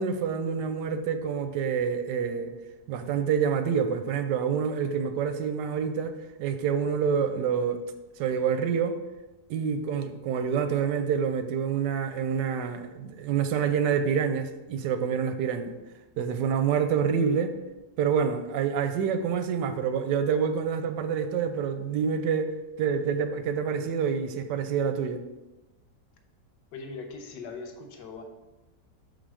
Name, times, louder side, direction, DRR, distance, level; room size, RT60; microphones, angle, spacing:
voice 1, 0.0-2.5 2.9-7.8 8.2-9.0 9.5-15.7 16.2-17.5 18.0-25.2, right 7 dB, 85° right, 8 dB, 1.2 m, -27 dB
voice 2, 26.7-28.2, left 4 dB, 90° left, 5 dB, 1.4 m, -40 dB
6.5 x 4.1 x 4.8 m, 1.0 s
omnidirectional pair, 1.8 m